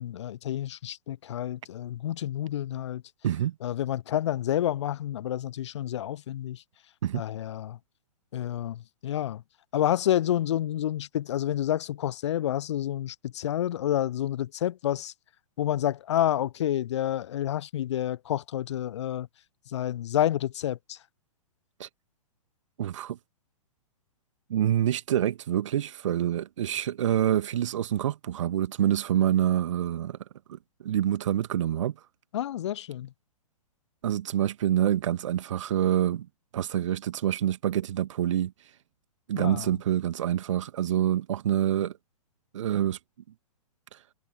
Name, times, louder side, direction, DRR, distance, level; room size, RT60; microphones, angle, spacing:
voice 1, 0.0-3.0 3.6-6.6 7.1-7.8 8.3-9.4 9.7-15.1 15.6-19.3 19.7-21.0 32.3-33.1 39.4-39.7, left 11 dB, 50° left, 0.5 m, -29 dB
voice 2, 3.2-3.5 7.0-7.2 21.8-21.9 22.8-23.2 24.5-30.2 30.5-31.9 34.0-36.3 36.5-38.5 39.3-41.9 42.5-43.0, right 11 dB, 50° right, 1.6 m, -26 dB
figure-of-eight pair, 115°, 20 cm